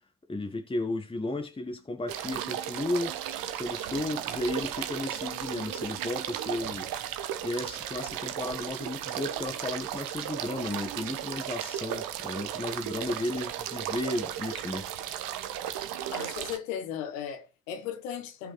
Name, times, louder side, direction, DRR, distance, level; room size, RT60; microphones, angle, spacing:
voice 1, 0.3-3.2 3.5-6.9 7.4-14.9, left 2 dB, 15° left, 1.3 m, -34 dB
sound 1, 2.1-16.6, right 11 dB, 55° right, 1.1 m, -35 dB
voice 2, 16.1-18.5, left 9 dB, 70° left, 1.5 m, -36 dB
15.5 x 5.5 x 3.2 m
figure-of-eight pair, 45°, 40 cm